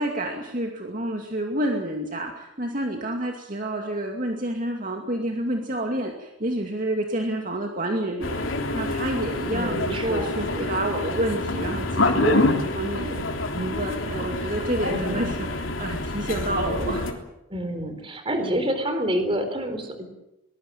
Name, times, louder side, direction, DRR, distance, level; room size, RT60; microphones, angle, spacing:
voice 1, 0.0-13.2 13.5-17.1, right 1 dB, 45° right, 2 dB, 2.4 m, -29 dB
sound 1, 8.2-17.1, left 2 dB, 85° left, 3.4 m, -27 dB
voice 2, 9.5-10.4 14.9-15.4 17.5-20.1, equal, 25° right, 7 dB, 4.0 m, -28 dB
23.5 x 20.0 x 7.6 m, 0.90 s
head